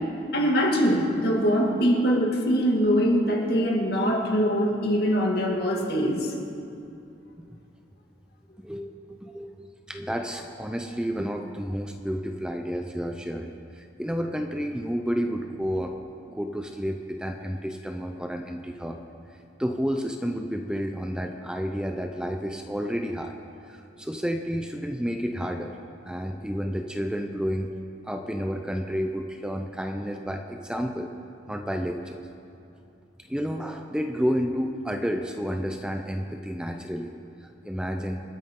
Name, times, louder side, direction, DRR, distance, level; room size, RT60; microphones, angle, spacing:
voice 1, 0.3-6.3, equal, 60° left, -1 dB, 2.3 m, -23 dB
voice 2, 9.2-15.9 16.3-19.0 19.6-23.3 23.6-25.8 26.0-27.7 28.0-31.1 31.5-32.2 33.3-37.1 37.4-38.2, equal, 5° right, 4 dB, 0.6 m, -30 dB
28.0 x 9.9 x 3.9 m, 2.7 s
head